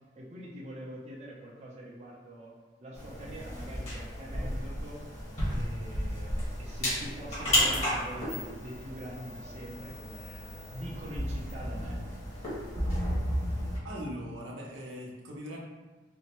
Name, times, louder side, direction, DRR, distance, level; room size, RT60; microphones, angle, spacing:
voice 1, 0.1-5.1 5.5-10.5 10.7-12.0, equal, 35° right, -3 dB, 0.5 m, -44 dB
sound 1, 2.9-13.8, equal, 35° left, 1.4 m, -33 dB
voice 2, 13.8-15.6, equal, 75° right, -2 dB, 0.6 m, -40 dB
4.2 x 2.1 x 2.9 m, 1.2 s
head